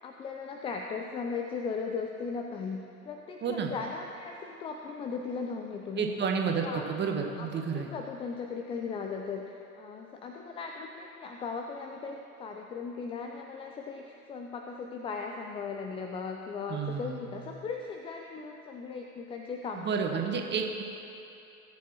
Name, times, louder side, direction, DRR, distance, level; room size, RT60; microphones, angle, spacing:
voice 1, 0.0-6.3 6.6-6.9 7.4-20.2, left 5 dB, 15° left, 3 dB, 0.4 m, -38 dB
voice 2, 3.4-3.7 5.9-7.9 16.7-17.2 19.8-20.8, right 6 dB, 25° right, 3 dB, 1.2 m, -30 dB
18.0 x 7.6 x 3.0 m, 2.8 s
figure-of-eight pair, 80°, 43 cm